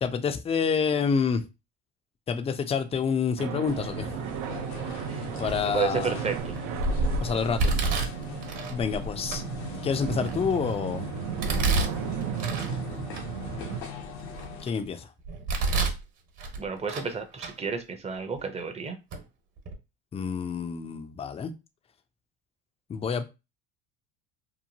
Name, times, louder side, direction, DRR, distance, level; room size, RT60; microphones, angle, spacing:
voice 1, 0.0-1.4 2.3-4.1 5.4-6.1 7.2-7.8 8.7-9.4 9.8-11.1 14.6-15.1 20.1-21.5 22.9-23.3, left 6 dB, 20° left, 0.4 m, -28 dB
sound 1, 3.4-13.8, right 9 dB, 70° right, 0.5 m, -35 dB
sound 2, 3.7-14.6, left 1 dB, 85° left, 0.8 m, -37 dB
Domestic sounds home sounds, 5.5-5.9 6.4-6.9 7.6-8.8 9.3-9.4 10.0-10.8 11.4-12.7 13.1-13.2 13.8-14.8 15.2-16.0 16.4-17.1 17.4-17.5 18.4-18.5 19.1-19.2 19.6-19.7, right 3 dB, 55° right, 1.2 m, -29 dB
voice 2, 5.7-6.6 16.6-19.0, right 5 dB, 20° right, 0.6 m, -31 dB
2.9 x 2.2 x 2.7 m
supercardioid pair, 100°, 32 cm